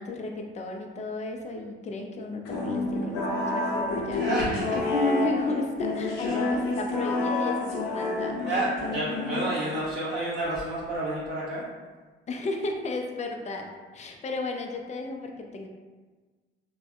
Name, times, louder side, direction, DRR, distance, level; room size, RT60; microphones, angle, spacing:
voice 1, 0.0-4.2 4.7-8.6 12.3-13.7 13.9-15.7, left 3 dB, 25° left, 2 dB, 0.4 m, -33 dB
sound 1, 2.5-9.8, left 2 dB, 65° left, 0.6 m, -29 dB
voice 2, 4.1-4.8 6.2-6.4 8.3-11.6, right 1 dB, 35° right, -8 dB, 0.7 m, -30 dB
3.3 x 2.1 x 2.4 m, 1.3 s
figure-of-eight pair, 55°, 31 cm